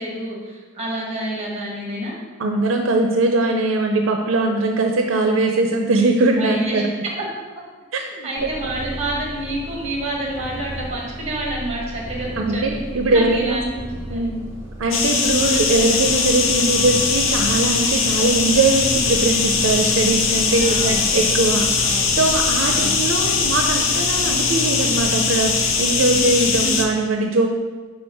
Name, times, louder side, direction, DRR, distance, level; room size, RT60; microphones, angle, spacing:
voice 1, 0.0-2.1 6.4-6.8 8.2-12.7 13.0-14.3 15.0-15.4 20.6-21.1 21.8-22.1 22.6-22.9 26.5-26.8, right 1 dB, 35° right, -2 dB, 1.6 m, -28 dB
voice 2, 2.4-6.9 8.2-8.5 12.4-13.6 14.1-14.5 14.8-27.5, right 2 dB, 80° right, 3 dB, 0.5 m, -21 dB
Purr, 8.4-23.8, right 1 dB, 15° right, 0.9 m, -36 dB
sound 1, 14.9-26.9, left 5 dB, 80° left, 0.6 m, -20 dB
sound 2, 14.9-25.9, left 1 dB, 20° left, 0.5 m, -39 dB
4.9 x 4.4 x 4.6 m, 1.3 s
head